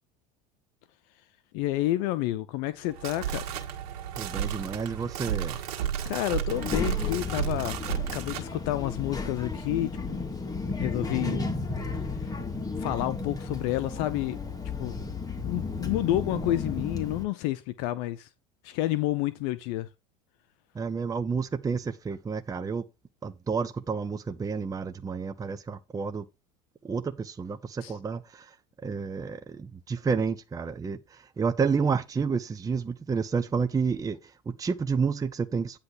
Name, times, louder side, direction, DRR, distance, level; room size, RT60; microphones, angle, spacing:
voice 1, 1.5-3.6 6.0-7.8 8.1-10.3 10.8-11.4 12.8-14.4 14.8-15.0 15.4-18.3 18.6-19.9 27.8-27.9, left 15 dB, 65° left, 0.7 m, -29 dB
sound 1, 2.8-8.5, right 10 dB, 70° right, 1.7 m, -32 dB
voice 2, 4.2-5.6 20.7-22.8 23.2-26.3 26.8-28.6 28.8-35.8, right 5 dB, 15° right, 0.6 m, -30 dB
Child speech kid speaking, 6.5-17.2, left 3 dB, 20° left, 2.3 m, -33 dB
9.6 x 3.2 x 6.4 m
hypercardioid pair, 85°, 20 cm